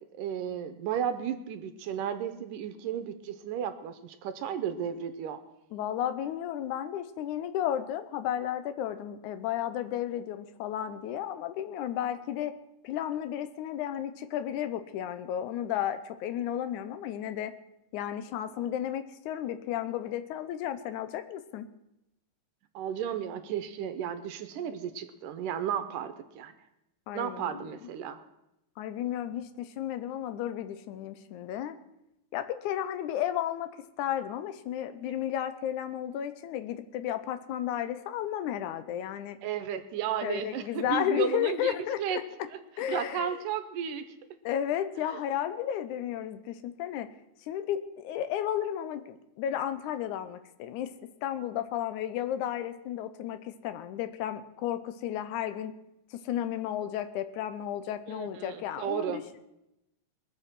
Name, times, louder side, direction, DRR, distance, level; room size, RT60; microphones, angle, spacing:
voice 1, 0.2-5.4 22.7-26.5 27.1-28.2 39.4-42.2 42.5-42.6 42.9-44.1 45.1-45.2 58.1-59.2, right 9 dB, 80° right, 10 dB, 2.4 m, -33 dB
voice 2, 5.7-12.5 12.8-17.5 17.9-21.7 27.1-27.7 28.8-31.8 32.3-33.7 34.0-39.4 40.2-42.2 42.8-43.4 44.4-47.1 47.5-55.7 56.1-59.2, left 10 dB, 75° left, 10 dB, 2.1 m, -33 dB
21.5 x 7.4 x 6.1 m, 0.87 s
omnidirectional pair, 3.8 m